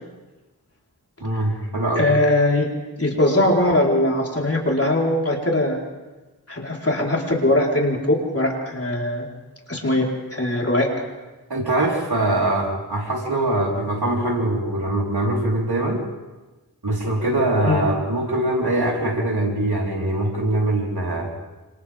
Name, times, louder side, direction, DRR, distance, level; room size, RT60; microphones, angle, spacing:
voice 1, 1.2-2.0 11.5-16.0 16.8-21.3, right 1 dB, 75° right, -2 dB, 4.5 m, -22 dB
voice 2, 1.9-2.7 3.0-5.8 6.5-9.3 9.7-10.9 17.6-17.9, left 1 dB, 35° left, -2 dB, 4.6 m, -20 dB
29.5 x 27.0 x 3.7 m, 1.2 s
wide cardioid pair, 70°, 39 cm